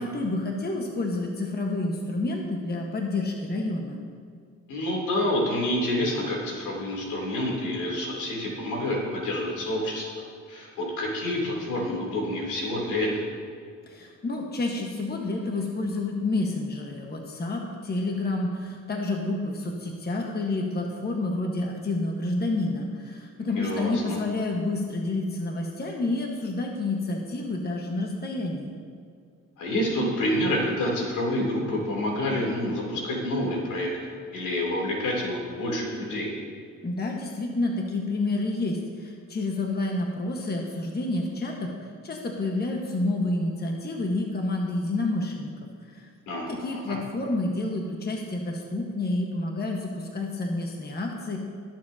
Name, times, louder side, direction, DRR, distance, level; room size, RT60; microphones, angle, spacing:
voice 1, 0.0-4.0 13.9-28.7 36.8-45.5 45.9-46.1 46.5-51.4, left 2 dB, 35° left, 0 dB, 1.3 m, -29 dB
voice 2, 4.7-10.2 10.5-13.2 23.5-24.2 29.6-33.9 34.2-36.3 46.3-47.0, left 1 dB, 85° left, -2 dB, 3.0 m, -28 dB
20.5 x 7.5 x 2.8 m, 2.3 s
cardioid pair, 90°, 30 cm